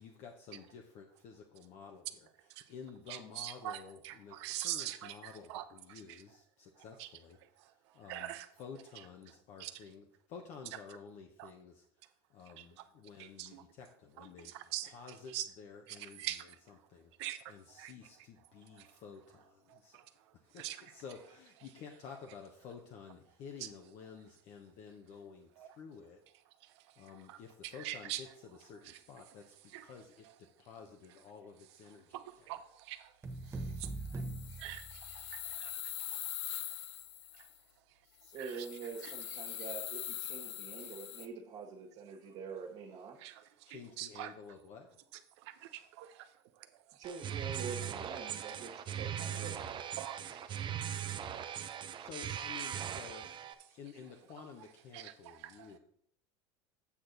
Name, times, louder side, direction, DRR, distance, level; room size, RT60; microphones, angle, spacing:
voice 1, 0.0-2.1 2.7-8.3 8.6-11.8 12.3-14.5 14.9-16.3 16.9-17.1 17.5-20.0 20.3-26.2 27.0-28.3 28.6-32.1 43.7-44.9 49.3-49.6 50.6-50.8 52.0-55.8, left 6 dB, 50° left, 1.1 m, -52 dB
voice 2, 3.1-6.2 6.8-7.1 7.4-8.5 8.9-9.7 11.4-11.5 12.6-12.9 13.2-13.6 14.2-15.5 15.9-16.9 17.2-17.9 18.7-19.0 19.7-21.0 23.6-23.7 25.6-25.8 26.6-28.2 28.8-29.0 29.7-29.9 30.2-30.3 31.9-36.9 37.3-37.5 37.9-38.0 38.4-39.7 40.4-40.5 40.8-40.9 43.1-44.3 45.1-47.0 48.2-49.0 49.6-49.7 50.0-52.1 53.7-53.8 54.9-55.8, right 14 dB, 75° right, 0.8 m, -46 dB
sound 1, 33.2-35.5, right 2 dB, 20° right, 1.1 m, -42 dB
sound 2, 33.6-37.6 38.2-41.3, left 12 dB, 80° left, 0.6 m, -43 dB
voice 3, 38.2-43.2 47.0-49.6, right 5 dB, 50° right, 1.8 m, -45 dB
sound 3, 47.0-53.5, right 9 dB, 35° right, 0.7 m, -40 dB
8.5 x 6.4 x 4.1 m
supercardioid pair, 105°, 15 cm